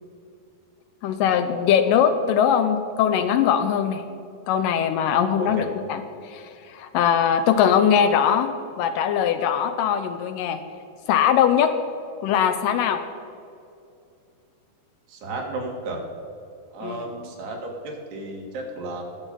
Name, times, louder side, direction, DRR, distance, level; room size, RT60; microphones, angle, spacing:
voice 1, 1.0-4.0 4.5-10.6 11.1-11.7 12.2-13.0 16.8-17.0, left 8 dB, 85° left, 7 dB, 1.9 m, -21 dB
voice 2, 15.1-16.0 16.7-19.0, right 2 dB, 80° right, 0 dB, 4.1 m, -33 dB
20.5 x 7.2 x 5.4 m, 2.6 s
omnidirectional pair, 4.6 m